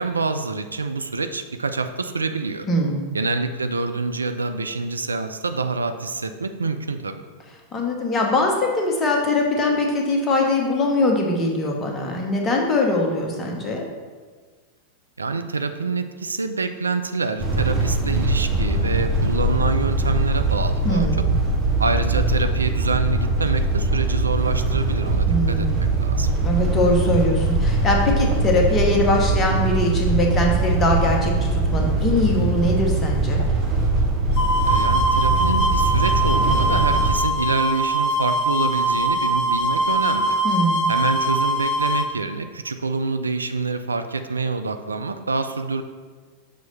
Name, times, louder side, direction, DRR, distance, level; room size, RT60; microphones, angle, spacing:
voice 1, 0.0-2.7 3.1-7.2 15.2-21.1 21.8-26.3 34.7-40.4 40.9-45.8, right 4 dB, 75° right, 8 dB, 0.3 m, -26 dB
voice 2, 2.7-3.1 7.7-13.8 20.8-21.4 25.3-25.8 26.4-33.4 40.4-40.8, left 1 dB, 25° left, 0 dB, 1.1 m, -22 dB
sound 1, 17.4-37.1, right 2 dB, 30° right, 1.2 m, -22 dB
sound 2, 34.4-42.1, right 1 dB, 45° left, 0.7 m, -22 dB
6.2 x 3.1 x 5.3 m, 1.5 s
figure-of-eight pair, 90°, 0 cm